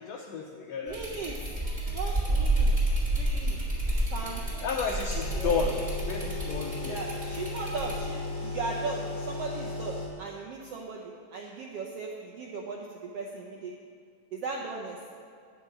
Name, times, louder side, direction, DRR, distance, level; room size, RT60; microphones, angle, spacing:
voice 1, 0.0-1.0 4.6-5.8 6.1-7.0, left 5 dB, 85° left, 1 dB, 1.5 m, -32 dB
voice 2, 0.8-1.5 1.9-2.7 3.2-3.6 4.1-4.4 5.3-5.8 6.9-13.7 14.3-15.0, right 3 dB, 75° right, -1 dB, 1.4 m, -37 dB
sound 1, 0.9-7.9, right 1 dB, 15° right, 2.3 m, -30 dB
sound 2, 5.1-10.1, left 3 dB, 25° left, 3.0 m, -36 dB
12.0 x 5.3 x 8.9 m, 2.4 s
omnidirectional pair, 3.7 m